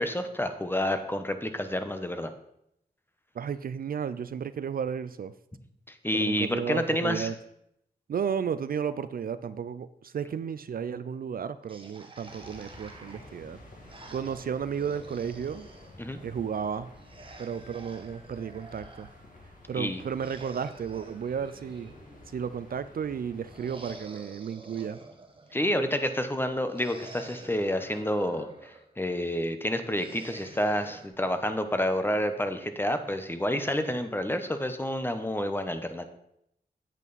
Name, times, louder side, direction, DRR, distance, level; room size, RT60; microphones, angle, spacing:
voice 1, 0.0-2.3 6.0-7.3 16.0-16.2 19.7-20.0 25.5-36.1, left 1 dB, 15° left, 8 dB, 0.9 m, -29 dB
voice 2, 3.4-5.3 6.1-7.3 8.1-13.6 14.1-15.7 16.2-16.9 17.4-19.1 19.7-21.9 22.3-25.0, right 7 dB, 60° right, 14 dB, 0.4 m, -33 dB
sound 1, 11.7-15.9 16.9-19.1 20.0-22.3 23.5-25.7 26.7-28.9 29.9-31.1, right 3 dB, 30° right, 1.5 m, -49 dB
sound 2, 12.2-24.0, left 1 dB, 50° left, 2.4 m, -51 dB
9.0 x 8.2 x 4.1 m, 0.77 s
wide cardioid pair, 85°, 17 cm